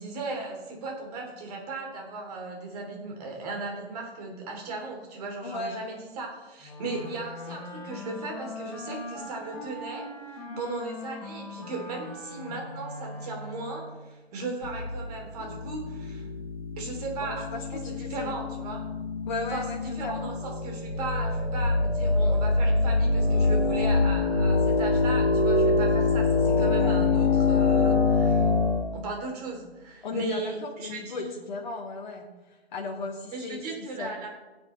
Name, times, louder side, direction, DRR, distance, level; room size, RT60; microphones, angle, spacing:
voice 1, 0.0-16.3 16.8-18.8 19.5-28.5 28.9-31.3 33.3-34.3, right 3 dB, 40° right, 1 dB, 3.2 m, -37 dB
voice 2, 5.4-5.9 10.5-10.6 17.2-18.3 19.3-20.3 26.8-27.0 30.0-32.3 32.7-34.1, left 3 dB, 45° left, 1 dB, 1.3 m, -36 dB
Wind instrument woodwind instrument, 6.6-14.0, left 1 dB, 5° left, 3.5 m, -40 dB
sound 1, 14.6-15.9 16.3-16.4 20.7-25.4, left 1 dB, 85° left, 1.8 m, -26 dB
sound 2, 15.4-28.8, left 4 dB, 65° left, 1.8 m, -26 dB
16.0 x 10.0 x 3.2 m, 1.2 s
figure-of-eight pair, 130°, 32 cm